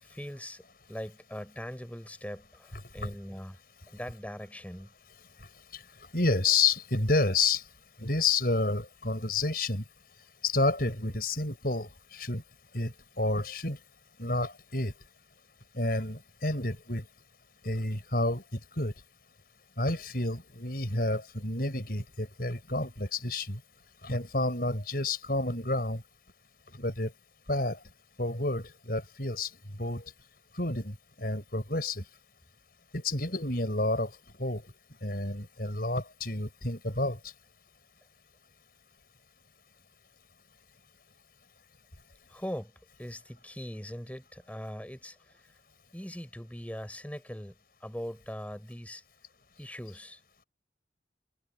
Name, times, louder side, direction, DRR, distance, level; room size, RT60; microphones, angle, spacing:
voice 1, 0.0-3.6 3.9-4.9 42.3-42.7 43.0-45.4 45.9-47.6 47.8-49.0 49.6-50.2, equal, 10° left, 7.1 m, -41 dB
voice 2, 6.1-7.6 8.0-9.8 10.4-12.4 12.7-13.8 14.2-14.9 15.7-17.0 17.6-18.9 19.8-23.6 24.0-26.0 26.7-27.1 27.5-27.8 28.2-29.5 29.8-30.0 30.6-32.0 32.9-34.1 34.4-34.6 35.0-37.2, left 2 dB, 55° left, 6.5 m, -30 dB
head